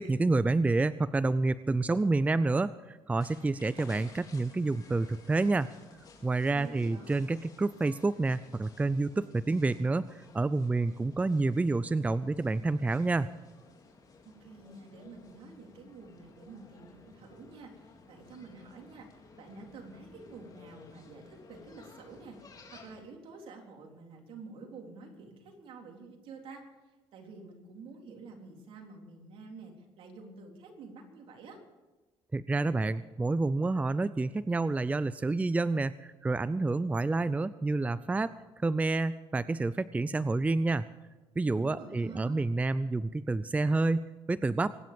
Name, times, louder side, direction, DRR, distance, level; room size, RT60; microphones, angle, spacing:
voice 1, 0.0-5.7 6.2-13.3 32.3-38.3 38.6-40.9 41.4-44.8, right 3 dB, 15° right, 15 dB, 0.5 m, -29 dB
sound 1, 3.2-23.0, left 4 dB, 40° left, 4.2 m, -56 dB
voice 2, 6.5-7.1 14.2-19.1 19.4-26.6 27.1-31.6 41.5-42.4, right 4 dB, 70° right, 1 dB, 3.8 m, -49 dB
24.0 x 10.5 x 5.3 m, 1.2 s
cardioid pair, 100°, 10 cm